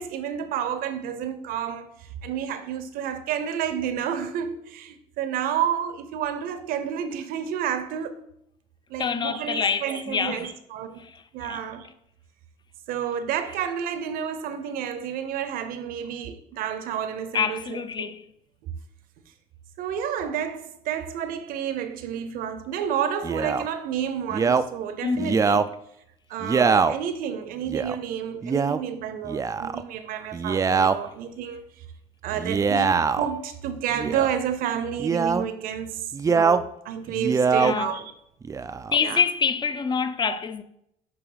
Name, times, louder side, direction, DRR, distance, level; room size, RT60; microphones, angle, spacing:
voice 1, 0.0-8.2 8.9-11.0 11.3-11.9 12.9-18.1 18.6-18.7 19.8-25.6 26.3-31.6 32.2-38.1 39.0-39.2 40.3-40.4, right 8 dB, 70° right, 0.7 m, -30 dB
voice 2, 9.0-10.5 11.0-11.7 17.3-18.2 25.0-25.5 37.6-37.9 38.9-40.6, left 6 dB, 30° left, 0.6 m, -26 dB
Male speech man speaking, 23.2-23.7 24.3-24.6 25.2-25.7 26.4-26.9 27.7-27.9 28.4-28.8 29.2-29.8 30.3-31.0 32.3-33.3 33.9-34.4 35.0-35.5 36.1-36.6 37.1-37.7 38.4-39.0, right 5 dB, 20° right, 0.4 m, -23 dB
7.9 x 3.5 x 3.9 m
supercardioid pair, 80°, 15 cm